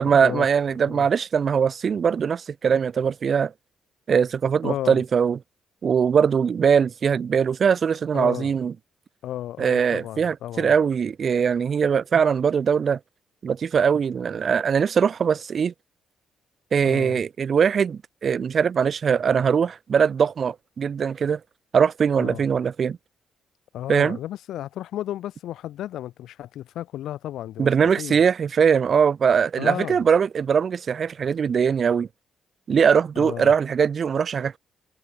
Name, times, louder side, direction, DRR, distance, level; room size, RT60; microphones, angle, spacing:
voice 1, 0.0-3.5 4.1-5.4 5.8-8.7 9.6-13.0 13.4-15.7 16.7-21.4 21.7-23.0 23.9-24.2 27.6-32.1 32.7-34.6, right 7 dB, 50° right, 0.6 m, -21 dB
voice 2, 4.6-5.0 8.1-8.5 9.2-10.7 16.8-17.2 22.2-22.4 23.7-28.2 29.6-30.0 33.1-33.5, left 12 dB, 80° left, 3.1 m, -33 dB
cardioid pair, 90°, 0 cm